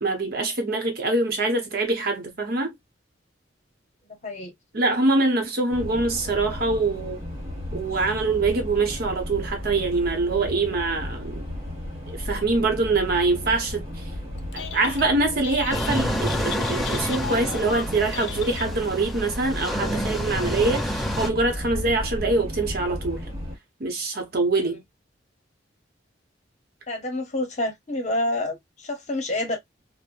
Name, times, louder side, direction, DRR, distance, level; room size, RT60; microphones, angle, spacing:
voice 1, 0.0-2.7 4.7-7.2 7.7-11.4 12.1-13.8 14.5-23.2 23.8-24.8, right 3 dB, 55° right, 0.9 m, -24 dB
sound 1, 5.7-23.6, left 1 dB, 35° right, 1.4 m, -34 dB
Telephone, 14.4-15.1 15.4-19.1, left 8 dB, 80° left, 0.5 m, -37 dB
sound 2, 15.7-21.3, equal, ahead, 0.5 m, -29 dB
voice 2, 26.9-29.6, left 1 dB, 40° left, 0.9 m, -28 dB
3.1 x 2.1 x 2.5 m
head